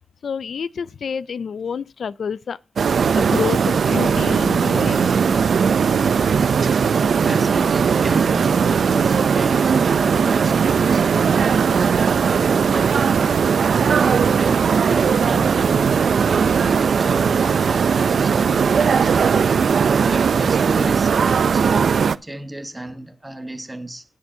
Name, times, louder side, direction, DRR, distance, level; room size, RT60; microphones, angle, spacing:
voice 1, 0.2-2.6 3.1-5.2, left 6 dB, 75° left, 0.4 m, -28 dB
sound 1, 2.8-22.2, right 6 dB, 75° right, 0.4 m, -18 dB
voice 2, 6.7-19.2 19.5-24.0, right 1 dB, 15° right, 1.2 m, -34 dB
17.5 x 7.0 x 2.7 m
wide cardioid pair, 130°, 0 cm